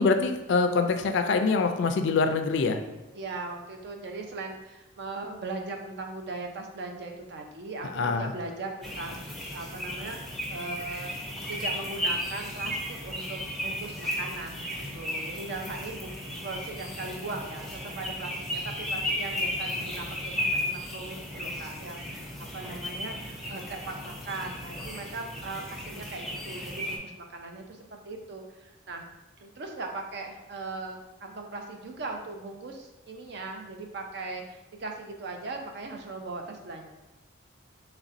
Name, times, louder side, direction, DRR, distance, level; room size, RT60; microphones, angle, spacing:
voice 1, 0.0-2.8 8.0-8.3, left 4 dB, 65° left, 7 dB, 0.3 m, -24 dB
voice 2, 3.1-10.2 10.5-11.2 11.5-16.1 16.4-23.2 23.5-29.1 29.4-36.9, right 3 dB, 60° right, 3 dB, 0.5 m, -39 dB
sound 1, 8.8-27.0, left 1 dB, ahead, 0.5 m, -35 dB
4.1 x 3.1 x 2.5 m, 1.0 s
head